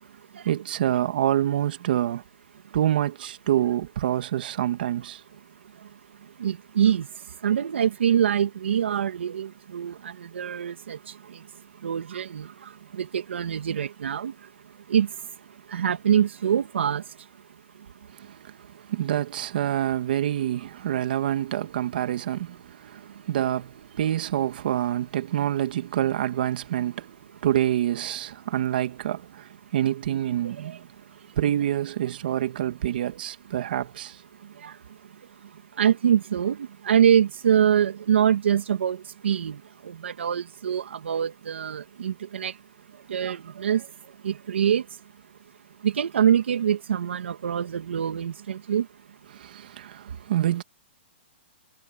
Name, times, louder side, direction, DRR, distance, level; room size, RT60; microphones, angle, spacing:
voice 1, 0.5-2.2 2.7-5.2 18.1-18.5 18.9-30.9 31.4-34.2 49.3-50.6, right 11 dB, 50° right, 2.2 m, -27 dB
voice 2, 6.4-7.1 7.4-11.0 11.3-11.4 11.8-12.5 12.9-14.3 14.9-15.1 15.7-17.0 30.6-30.8 34.6-34.7 35.8-39.6 39.8-42.5 43.1-43.9 44.2-44.8 45.8-48.9, right 9 dB, 75° right, 2.0 m, -24 dB
hypercardioid pair, 165°, 6 cm